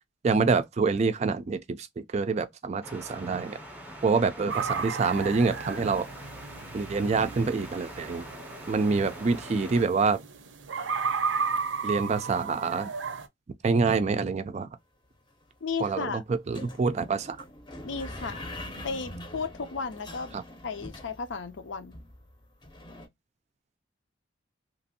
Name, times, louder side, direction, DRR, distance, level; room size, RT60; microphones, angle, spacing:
voice 1, 0.2-3.6 4.0-6.1 6.7-8.3 8.7-10.2 11.8-12.9 13.6-14.7 15.8-17.4 20.3-20.4, right 4 dB, 35° right, 0.3 m, -26 dB
sound 1, 2.8-9.9, equal, 10° right, 0.7 m, -44 dB
sound 2, 4.5-13.3, right 5 dB, 85° right, 0.5 m, -34 dB
sound 3, 15.1-15.2 15.4-15.8 16.5-23.1, left 1 dB, 25° left, 0.6 m, -43 dB
voice 2, 15.6-16.2 17.8-18.4 18.8-20.3 20.6-22.0, left 5 dB, 80° left, 0.6 m, -34 dB
3.0 x 2.5 x 2.7 m
head